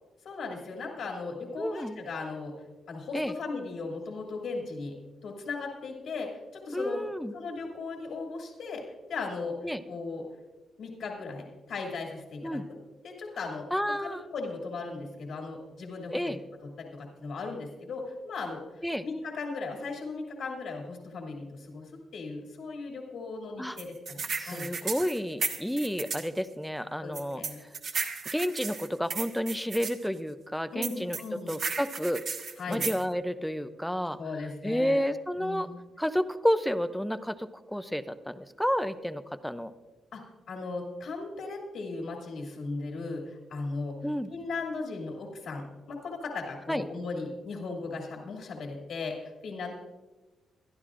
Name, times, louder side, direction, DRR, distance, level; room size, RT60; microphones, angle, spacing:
voice 1, 0.2-2.6 2.9-7.0 7.3-8.8 9.1-9.6 9.9-10.2 10.8-12.8 13.0-13.7 14.0-16.4 16.6-24.7 27.0-27.6 30.7-31.6 32.6-32.9 34.2-35.1 35.4-35.8 40.1-40.2 40.5-49.7, left 3 dB, 70° left, 0 dB, 2.3 m, -37 dB
voice 2, 1.6-2.0 3.1-3.3 6.7-7.3 9.6-9.8 12.4-12.6 13.7-14.2 16.1-16.4 18.8-19.0 23.6-23.8 24.4-27.4 28.3-31.2 31.5-32.2 32.7-34.2 34.6-35.7 36.0-39.7 44.0-44.3 46.7-46.8, equal, ahead, 12 dB, 0.4 m, -30 dB
sound 1, 23.8-26.3 27.1-29.9 30.8-33.0, right 5 dB, 50° right, 1.3 m, -34 dB
22.5 x 12.5 x 2.5 m, 1.2 s
wide cardioid pair, 150°, 0 cm